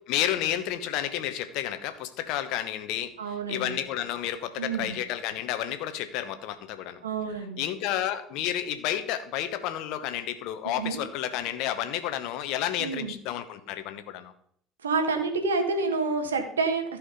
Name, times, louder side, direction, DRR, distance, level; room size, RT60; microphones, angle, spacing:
voice 1, 0.1-7.0 7.6-14.3, left 11 dB, 60° left, 10 dB, 1.1 m, -31 dB
voice 2, 3.2-3.8 4.6-5.0 7.0-7.7 10.8-11.0 12.8-13.1 14.8-17.0, right 4 dB, 80° right, 6 dB, 1.5 m, -28 dB
14.5 x 5.0 x 5.2 m, 0.64 s
figure-of-eight pair, 65°, 0 cm